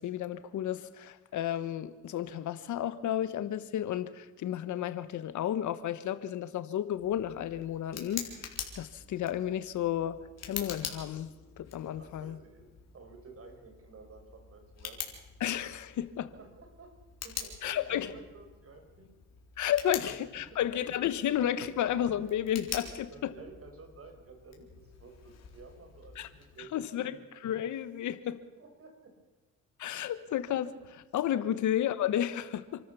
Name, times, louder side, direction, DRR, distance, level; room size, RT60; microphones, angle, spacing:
voice 1, 0.0-11.3 11.6-12.3 15.4-16.3 17.6-18.1 19.6-23.3 26.2-26.3 26.7-28.4 29.8-32.9, left 11 dB, 75° left, 13 dB, 1.3 m, -32 dB
Tick, 6.9-26.6, left 7 dB, 60° left, 4.0 m, -46 dB
voice 2, 11.9-15.0 16.2-16.9 17.2-19.1 19.9-20.1 20.5-20.6 23.1-27.1 28.6-29.1 31.4-31.5, right 3 dB, 50° right, 5 dB, 5.5 m, -53 dB
28.0 x 13.0 x 7.0 m, 1.2 s
cardioid pair, 90°, 30 cm